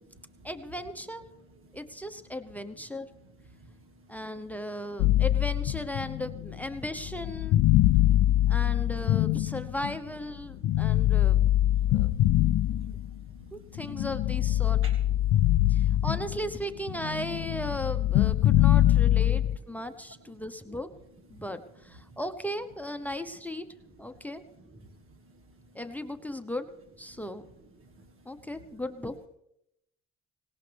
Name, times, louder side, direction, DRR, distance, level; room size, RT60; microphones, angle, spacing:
voice 1, 0.4-1.2 1.7-3.1 4.1-7.6 8.5-11.4 11.9-12.1 12.7-12.8 13.5-14.8 15.7-20.9 21.3-23.6 24.0-24.4 25.7-26.7 27.0-27.4 28.2-29.1, left 1 dB, 5° left, 10 dB, 1.0 m, -36 dB
voice 2, 3.5-4.2 7.7-8.5 10.9-11.1 11.7-13.8 14.8-14.9 15.3-16.0 22.1-22.2 24.7-24.8 25.3-25.6 27.1-27.2 27.8-28.1, right 2 dB, 45° right, 3 dB, 1.8 m, -54 dB
sound 1, 5.0-10.1 10.6-13.3 13.8-16.6 16.9-19.6, left 14 dB, 75° left, 0.4 m, -24 dB
18.5 x 18.0 x 3.5 m, 0.80 s
cardioid pair, 90°, 30 cm